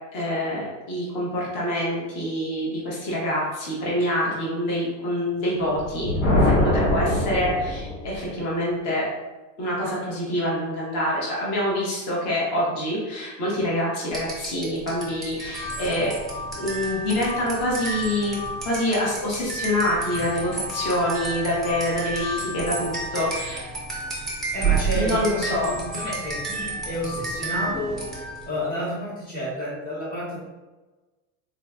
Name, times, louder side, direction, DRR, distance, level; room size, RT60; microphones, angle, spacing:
voice 1, 0.1-6.1 6.4-9.0 9.6-16.1 16.5-23.7 24.9-25.7, left 1 dB, 40° left, -5 dB, 1.1 m, -26 dB
Thunder, 5.6-8.3, left 1 dB, 90° left, 1.2 m, -23 dB
sound 1, 14.1-28.6, right 3 dB, ahead, 0.4 m, -31 dB
voice 2, 24.5-28.0 28.5-30.4, equal, 20° left, -8 dB, 1.4 m, -30 dB
3.8 x 2.8 x 2.3 m, 1.2 s
supercardioid pair, 160°, 40 cm